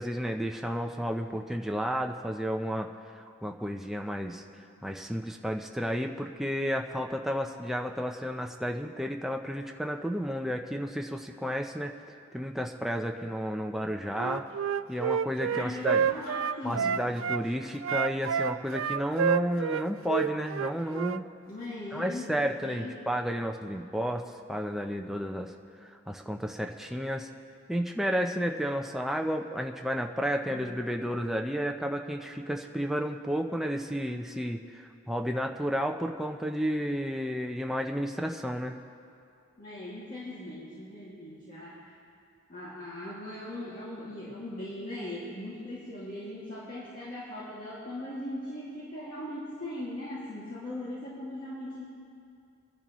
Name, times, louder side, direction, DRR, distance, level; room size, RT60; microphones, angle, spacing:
voice 1, 0.0-2.9 3.4-4.4 4.8-14.5 14.9-16.2 16.6-21.2 21.9-25.5 25.8-27.3 27.7-38.7, equal, ahead, 2 dB, 0.6 m, -32 dB
Wind instrument woodwind instrument, 14.2-17.4 17.8-21.2, right 7 dB, 90° right, 0.3 m, -29 dB
voice 2, 15.4-17.0 21.5-23.0 30.4-30.8 39.6-42.0 42.5-51.8, left 1 dB, 45° left, -9 dB, 2.3 m, -39 dB
24.5 x 11.0 x 3.1 m, 2.4 s
head